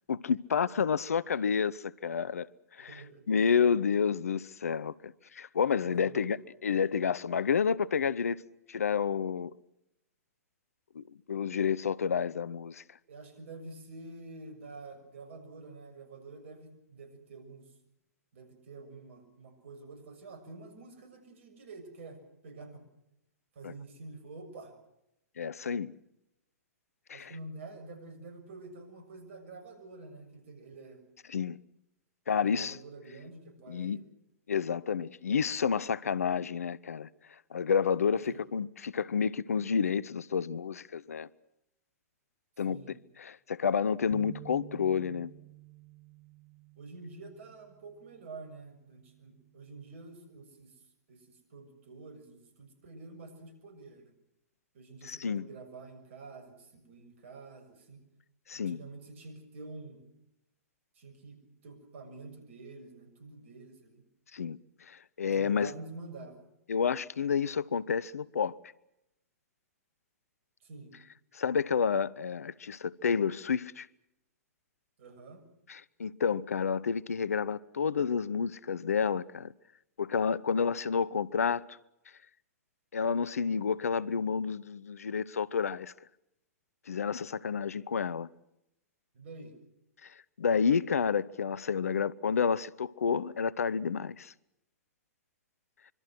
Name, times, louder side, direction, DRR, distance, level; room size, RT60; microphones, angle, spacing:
voice 1, 0.1-2.5 2.8-6.4 6.6-8.4 8.7-9.5 10.9-12.8 23.6-23.7 25.4-25.9 27.1-27.3 31.3-31.6 32.3-32.8 33.7-34.0 34.5-37.1 37.5-41.3 42.6-45.3 55.0-55.5 58.5-58.8 64.3-64.6 64.9-65.7 66.7-68.5 71.3-73.9 75.7-79.5 80.0-81.6 82.9-85.9 86.9-88.3 90.0-90.1 90.4-94.3, left 6 dB, 70° left, 0.9 m, -30 dB
voice 2, 2.8-3.2 5.8-6.4 13.1-17.7 18.3-22.8 23.5-24.7 27.1-31.0 32.3-34.1 38.3-38.4 42.6-43.0 46.8-50.7 51.1-54.1 54.7-58.0 58.5-60.0 61.0-64.0 65.2-66.4 70.6-70.9 75.0-75.4 89.1-89.6, right 3 dB, 55° right, 6.7 m, -48 dB
sound 1, 44.1-50.4, right 12 dB, 15° right, 7.2 m, -53 dB
25.5 x 24.5 x 6.1 m
figure-of-eight pair, 110°, 8 cm